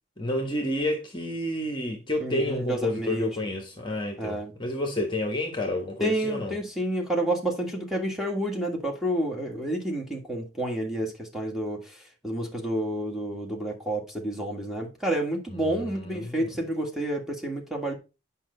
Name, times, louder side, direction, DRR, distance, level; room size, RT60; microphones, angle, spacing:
voice 1, 0.2-6.5 15.6-16.5, left 1 dB, 25° left, 1.2 m, -30 dB
voice 2, 2.2-3.4 4.2-4.5 6.0-12.0 12.2-18.0, right 1 dB, ahead, 1.6 m, -29 dB
9.0 x 5.4 x 3.9 m
head